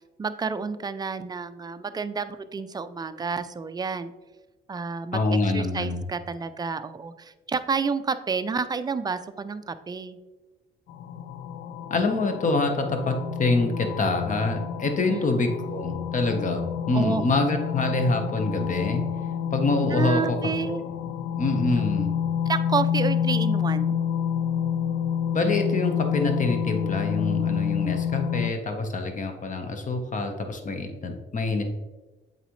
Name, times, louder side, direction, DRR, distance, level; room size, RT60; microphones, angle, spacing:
voice 1, 0.2-4.1 4.7-10.2 15.1-15.3 16.9-17.3 19.9-20.8 22.5-24.0, right 5 dB, 20° right, 11 dB, 0.4 m, -30 dB
voice 2, 5.1-6.0 11.9-19.0 19.5-20.4 20.6-20.8 21.4-22.1 25.3-31.6, left 3 dB, 40° left, 5 dB, 1.0 m, -26 dB
sound 1, 10.9-28.5, left 8 dB, 75° left, 0.4 m, -28 dB
7.8 x 4.1 x 3.1 m, 1.2 s
cardioid pair, 90°, 20 cm